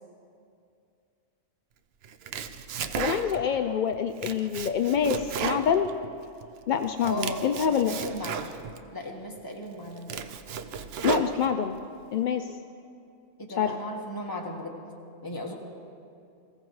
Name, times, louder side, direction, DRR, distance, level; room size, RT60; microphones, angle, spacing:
Domestic sounds home sounds, 2.0-3.6 3.9-6.5 6.8-8.8 9.4-9.5 9.9-11.8, right 7 dB, 65° right, 0.8 m, -34 dB
voice 1, 3.0-5.9 6.7-8.0 11.0-11.7 12.1-12.6 13.6-13.7, left 8 dB, 65° left, 7 dB, 0.4 m, -26 dB
voice 2, 7.0-7.4 7.9-8.5 8.9-10.1 13.4-14.8 15.2-15.5, equal, 15° left, 0 dB, 1.4 m, -36 dB
20.0 x 15.5 x 3.2 m, 2.5 s
omnidirectional pair, 1.3 m